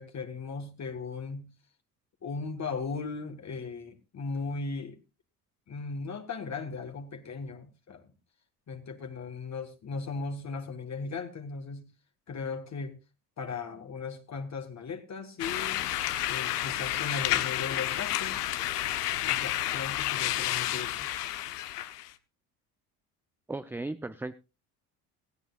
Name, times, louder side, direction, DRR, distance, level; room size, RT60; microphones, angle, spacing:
voice 1, 0.0-1.5 2.2-5.0 5.7-8.1 8.7-11.9 12.3-13.0 13.4-15.9 16.2-18.4 19.2-21.1, left 4 dB, 35° left, 1.7 m, -37 dB
sound 1, 15.4-22.1, left 14 dB, 85° left, 0.9 m, -30 dB
voice 2, 23.5-24.3, right 2 dB, 5° right, 0.6 m, -36 dB
18.0 x 14.5 x 2.5 m
hypercardioid pair, 65°, 46 cm